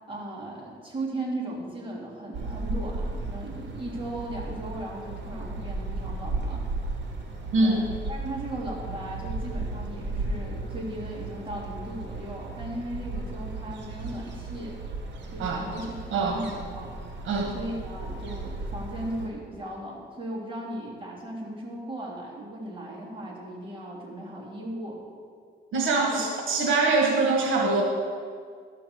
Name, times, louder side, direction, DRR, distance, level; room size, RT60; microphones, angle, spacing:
voice 1, 0.1-6.6 7.5-7.8 8.1-14.8 15.3-16.9 17.5-25.0 26.1-26.3, right 1 dB, 25° right, -4 dB, 3.1 m, -37 dB
sound 1, 2.3-19.3, right 2 dB, 65° right, 1.9 m, -35 dB
voice 2, 25.7-27.8, right 3 dB, 80° right, 0 dB, 1.5 m, -23 dB
12.5 x 6.0 x 6.9 m, 2.1 s
cardioid pair, 90°, 20 cm